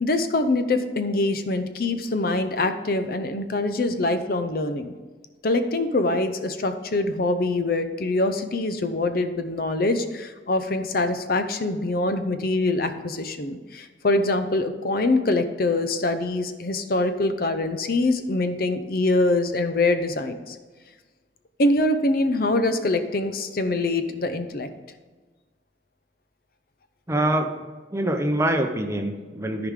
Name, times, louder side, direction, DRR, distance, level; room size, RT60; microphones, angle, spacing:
voice 1, 0.0-4.9 5.4-20.6 21.6-24.7, left 2 dB, 55° left, 9 dB, 0.6 m, -24 dB
voice 2, 27.1-27.5 27.9-29.7, right 1 dB, 15° right, 5 dB, 0.6 m, -24 dB
13.5 x 4.9 x 3.7 m, 1.3 s
head